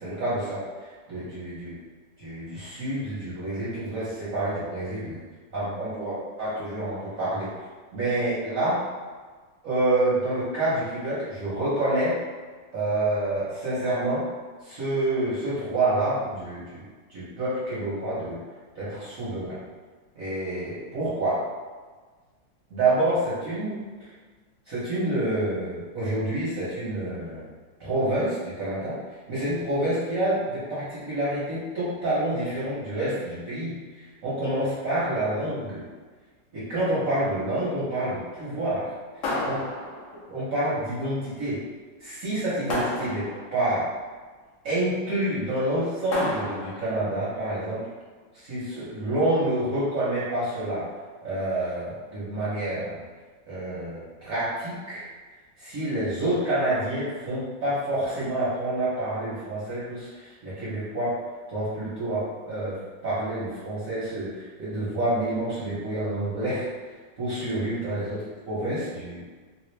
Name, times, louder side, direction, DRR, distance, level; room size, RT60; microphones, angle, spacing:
voice 1, 0.0-1.8 2.2-5.2 5.5-7.5 7.9-8.8 9.6-12.2 12.7-14.3 14.6-16.8 17.1-18.4 18.7-19.6 20.2-21.4 22.7-23.8 24.7-27.5 27.8-29.0 29.3-35.8 36.5-38.9 39.4-39.7 40.1-41.6 42.0-43.9 44.6-47.9 48.3-50.9 51.2-53.0 53.5-55.0 55.6-61.2 61.5-66.7 67.2-69.2, right 1 dB, 50° right, -11 dB, 1.2 m, -28 dB
sound 1, 39.2-40.3 42.7-43.7 46.1-47.0, left 1 dB, 75° left, 0.7 m, -30 dB
3.2 x 2.4 x 3.2 m, 1.4 s
omnidirectional pair, 2.1 m